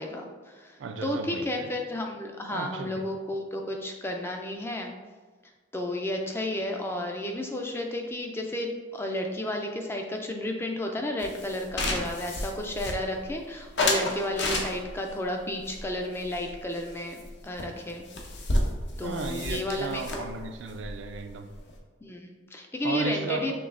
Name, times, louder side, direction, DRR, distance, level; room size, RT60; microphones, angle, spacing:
voice 1, 0.0-4.9 5.7-18.1 19.0-20.3 22.0-23.5, left 1 dB, 10° left, 2 dB, 0.3 m, -32 dB
voice 2, 0.8-1.7 2.5-3.0 19.0-21.5 22.8-23.5, right 4 dB, 70° right, 6 dB, 0.4 m, -35 dB
sound 1, 11.2-13.3 13.8-15.1 15.6-16.9 17.2-17.3 17.6-17.7 17.9-21.8, left 1 dB, 60° left, 0.6 m, -31 dB
5.9 x 3.2 x 2.5 m, 1.4 s
head